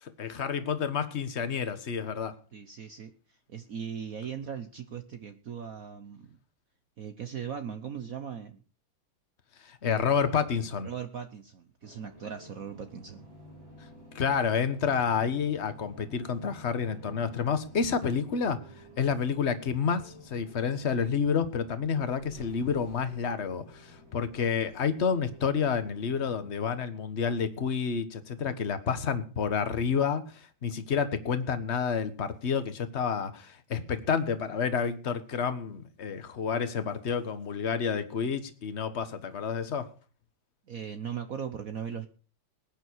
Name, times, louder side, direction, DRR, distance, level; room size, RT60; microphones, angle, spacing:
voice 1, 0.0-2.4 9.6-10.9 14.1-39.9, left 6 dB, 35° left, 10 dB, 1.4 m, -29 dB
voice 2, 2.5-6.4 7.0-8.6 10.8-13.3 40.7-42.1, right 7 dB, 55° right, 8 dB, 1.1 m, -39 dB
sound 1, 11.8-26.6, equal, 80° right, 8.7 m, -52 dB
20.0 x 9.3 x 4.6 m, 0.37 s
omnidirectional pair, 2.2 m